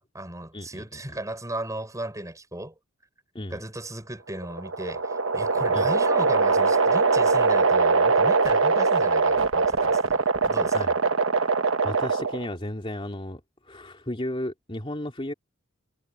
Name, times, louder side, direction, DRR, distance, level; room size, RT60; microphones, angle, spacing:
voice 1, 0.0-2.7 3.5-10.9, right 1 dB, 15° right, 5.5 m, -36 dB
voice 2, 0.5-1.2 3.3-3.6 5.7-5.9 10.7-10.9 11.4-11.6 11.8-15.3, left 1 dB, 25° left, 2.9 m, -34 dB
sound 1, 4.3-12.5, right 4 dB, 70° right, 1.1 m, -22 dB
head